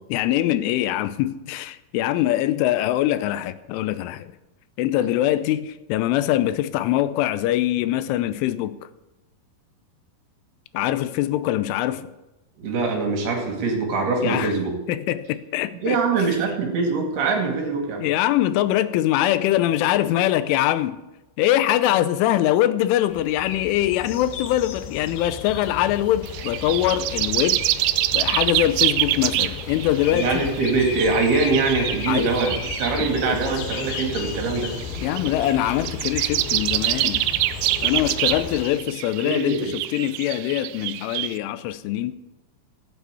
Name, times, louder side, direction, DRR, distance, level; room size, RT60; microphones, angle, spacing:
voice 1, 0.1-4.3 4.8-8.8 10.7-12.1 14.2-14.5 14.9-16.0 18.0-21.0 21.4-27.6 28.1-30.3 32.1-32.3 32.9-33.4 35.0-37.2 37.8-42.1, left 13 dB, 85° left, 3.2 m, -23 dB
voice 2, 12.6-14.7 15.8-18.0 30.1-34.7 39.2-39.7, right 4 dB, 60° right, 3.9 m, -23 dB
sound 1, 23.1-38.6, left 7 dB, 70° left, 2.6 m, -34 dB
sound 2, 26.2-41.4, right 15 dB, 80° right, 3.0 m, -26 dB
15.5 x 9.1 x 8.2 m
omnidirectional pair, 5.5 m